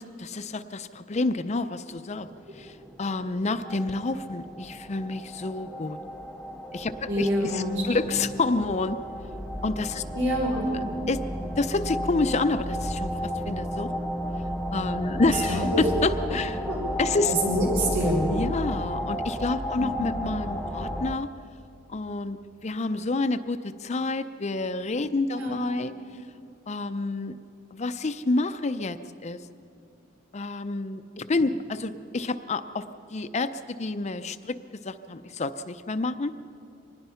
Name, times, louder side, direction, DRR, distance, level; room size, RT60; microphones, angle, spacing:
voice 1, 0.0-2.3 2.6-6.0 6.7-9.0 9.6-10.0 11.1-11.2 11.6-13.9 14.7-16.6 17.0-17.3 18.3-21.3 21.9-25.9 26.7-27.4 27.7-29.4 30.3-34.6 34.8-36.3, left 3 dB, 35° left, 10 dB, 0.5 m, -29 dB
sound 1, 2.2-21.2, equal, ahead, 0.9 m, -33 dB
voice 2, 7.1-7.7 8.0-8.3 10.1-10.7 15.3-15.8 16.7-16.8 17.4-18.3 19.8-20.1 25.3-25.6, equal, 65° right, -3 dB, 6.0 m, -26 dB
25.0 x 19.5 x 5.7 m, 2.6 s
head